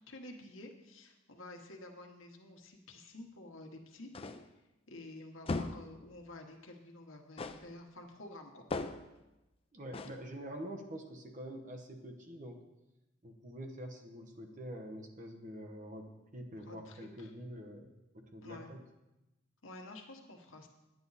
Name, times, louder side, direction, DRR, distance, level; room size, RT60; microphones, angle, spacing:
voice 1, 0.1-4.1 4.9-8.6 16.6-17.3 18.4-18.7 19.6-20.7, left 2 dB, 80° left, 3 dB, 1.3 m, -50 dB
sound 1, 4.1-4.6 5.5-5.9 7.4-7.7 8.7-9.2 9.9-10.2, left 3 dB, 30° left, 0.4 m, -38 dB
voice 2, 9.7-12.6 13.2-17.9 18.1-18.8, equal, 40° right, 4 dB, 1.1 m, -46 dB
9.8 x 9.4 x 4.1 m, 0.99 s
head